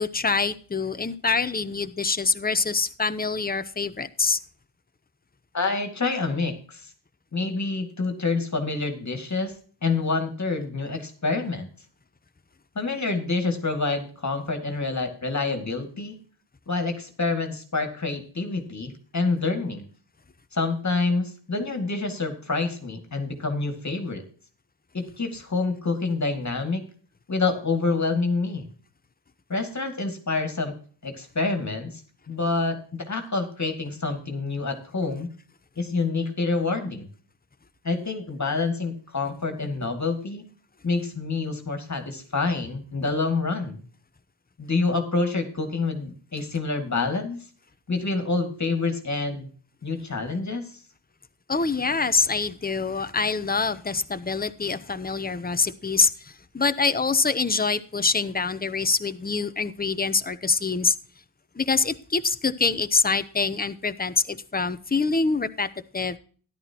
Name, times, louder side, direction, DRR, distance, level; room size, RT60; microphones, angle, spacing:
voice 1, 0.0-4.4 51.5-61.0 61.5-65.7 65.9-66.2, left 4 dB, 20° left, 12 dB, 0.8 m, -25 dB
voice 2, 5.5-6.9 7.3-9.5 9.8-11.7 12.8-16.2 16.7-19.9 20.5-24.2 24.9-26.8 27.3-28.7 29.5-30.7 31.0-32.0 32.3-35.3 35.8-37.1 37.8-40.4 40.8-43.8 44.6-47.4 47.9-49.5 49.8-50.8, left 3 dB, 35° left, 6 dB, 2.3 m, -27 dB
13.5 x 11.5 x 2.9 m, 0.43 s
cardioid pair, 80°, 49 cm